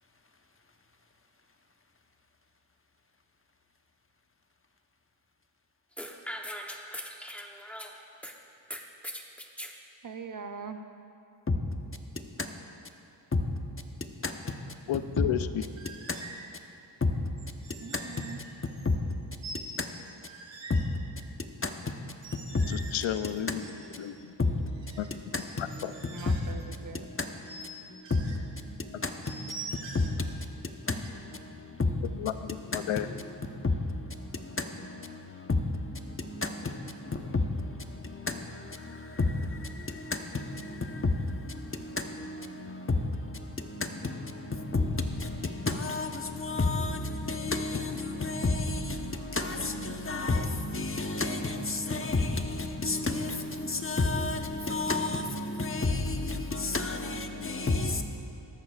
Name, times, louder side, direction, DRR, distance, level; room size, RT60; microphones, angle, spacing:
sound 1, 6.0-8.3 8.7-9.7, equal, 5° left, 0.9 m, -40 dB
voice 1, 10.0-10.8 17.8-18.4 26.1-27.3, right 5 dB, 40° right, 0.8 m, -42 dB
voice 2, 14.9-15.6 22.7-24.3 25.0-25.9 28.9-29.0 32.1-33.1, left 10 dB, 75° left, 0.6 m, -33 dB
sound 2, 15.8-16.5 17.4-19.1 19.4-20.9 22.1-24.2 24.7-26.7 27.5-27.7 28.0-28.4 29.2-30.2 30.9-31.2, right 2 dB, 65° right, 1.6 m, -45 dB
voice 3, 41.9-43.0 43.8-44.1 44.5-58.0, left 3 dB, 25° left, 1.0 m, -30 dB
18.5 x 13.5 x 2.5 m
cardioid pair, 70°, 47 cm